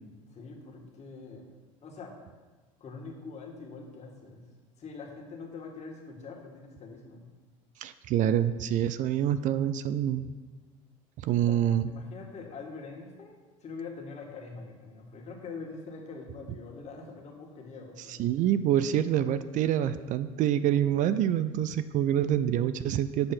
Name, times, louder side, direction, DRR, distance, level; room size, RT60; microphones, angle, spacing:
voice 1, 0.2-1.5 1.8-2.2 2.8-4.5 4.8-7.3 11.5-11.6 11.9-18.3, left 4 dB, 40° left, 0 dB, 1.8 m, -44 dB
voice 2, 7.8-10.3 11.2-11.9 18.1-23.3, right 10 dB, 50° right, 13 dB, 0.4 m, -26 dB
7.5 x 4.6 x 5.9 m, 1.3 s
hypercardioid pair, 75°, 17 cm